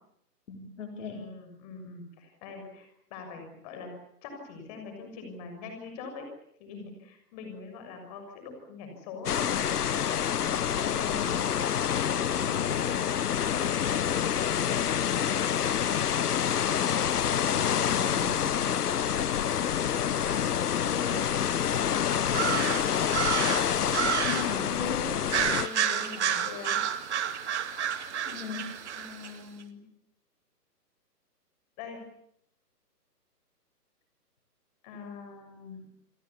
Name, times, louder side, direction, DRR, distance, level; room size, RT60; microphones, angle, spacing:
voice 1, 0.5-1.3 10.8-11.3 20.7-21.2 24.2-25.2 28.2-28.7, left 5 dB, 50° left, 2 dB, 4.1 m, -37 dB
voice 2, 1.1-3.9 4.2-6.3 6.6-9.6 10.6-11.4 12.0-13.6 15.6-18.7 22.0-22.8 25.5-26.8 29.0-29.8 31.8-32.0 34.8-35.8, left 4 dB, 25° left, 5 dB, 6.5 m, -43 dB
sound 1, 9.3-25.7, left 9 dB, 65° left, 1.0 m, -27 dB
sound 2, 22.3-24.6 25.3-29.3, right 8 dB, 45° right, 2.2 m, -30 dB
29.0 x 21.5 x 7.2 m, 0.71 s
hypercardioid pair, 160°, 49 cm